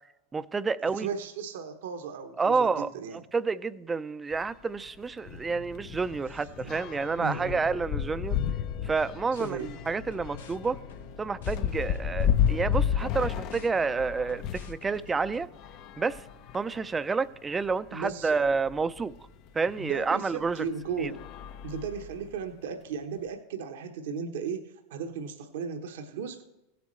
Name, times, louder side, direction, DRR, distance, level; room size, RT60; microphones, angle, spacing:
voice 1, 0.3-1.1 2.4-2.9 3.3-8.4 8.8-10.8 11.2-15.5 16.0-16.2 16.5-19.1 19.5-20.6 21.0-21.1, right 4 dB, 15° right, 15 dB, 0.4 m, -29 dB
voice 2, 0.8-3.3 7.2-7.6 9.4-9.7 17.9-18.5 19.8-21.2 21.6-26.4, right 6 dB, 75° right, 5 dB, 1.0 m, -36 dB
sound 1, 4.3-4.5 4.9-5.0 5.3-14.8 15.5-16.8 17.5-17.6 17.9-18.0 19.7-19.8 20.4-20.6 21.1-22.3, left 9 dB, 50° left, 0.6 m, -32 dB
sound 2, 5.2-23.3, left 4 dB, 70° left, 2.4 m, -50 dB
sound 3, 9.3-15.5, left 5 dB, 85° left, 1.0 m, -49 dB
16.5 x 7.9 x 3.2 m, 0.97 s
hypercardioid pair, 105°, 0 cm